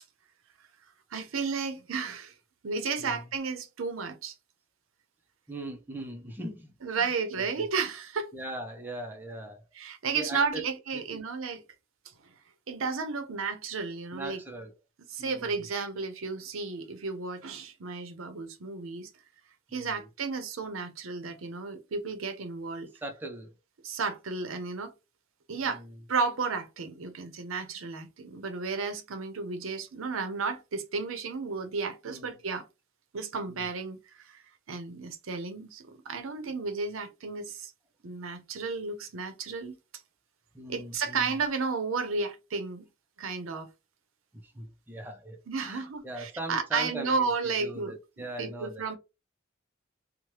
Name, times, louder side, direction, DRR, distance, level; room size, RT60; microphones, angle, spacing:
voice 1, 1.1-2.3 2.6-4.4 6.8-8.3 9.8-11.6 12.7-14.4 15.1-19.1 19.7-22.9 23.8-24.9 25.5-25.8 26.1-32.6 33.1-34.4 34.7-37.7 38.0-39.7 40.7-42.8 43.2-43.7 45.5-49.0, right 4 dB, 85° right, 0.6 m, -33 dB
voice 2, 5.5-7.1 7.4-7.7 8.3-9.6 10.1-10.7 10.9-11.2 14.1-14.7 15.2-15.7 19.7-20.1 23.0-23.5 25.5-26.0 32.1-32.4 33.5-33.7 40.5-41.3 44.3-49.0, right 1 dB, 10° right, 0.5 m, -40 dB
2.9 x 2.1 x 3.1 m
head